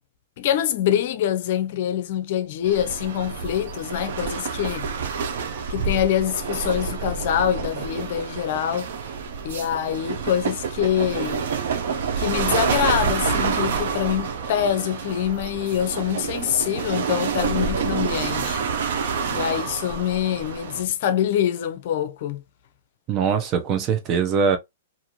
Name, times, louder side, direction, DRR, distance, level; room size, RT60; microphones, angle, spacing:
voice 1, 0.4-4.9 5.7-8.9 9.4-11.4 12.2-18.6 18.9-19.0 19.3-22.4, left 10 dB, 55° left, 0.5 m, -25 dB
sound 1, 2.6-20.8, right 5 dB, 65° right, 0.7 m, -28 dB
voice 2, 23.1-24.6, right 6 dB, 30° right, 0.7 m, -22 dB
2.6 x 2.4 x 3.0 m
hypercardioid pair, 140°, 0 cm